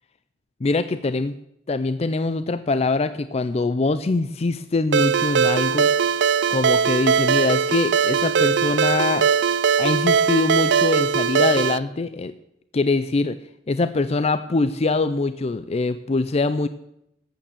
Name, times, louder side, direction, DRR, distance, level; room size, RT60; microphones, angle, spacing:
voice 1, 0.6-1.3 1.7-5.9 6.5-9.2 9.8-12.3 12.7-13.4 13.7-16.7, left 3 dB, 35° left, 13 dB, 0.4 m, -23 dB
Ringtone, 4.9-11.8, right 6 dB, 65° right, 0.4 m, -20 dB
13.0 x 8.6 x 7.4 m, 0.80 s
head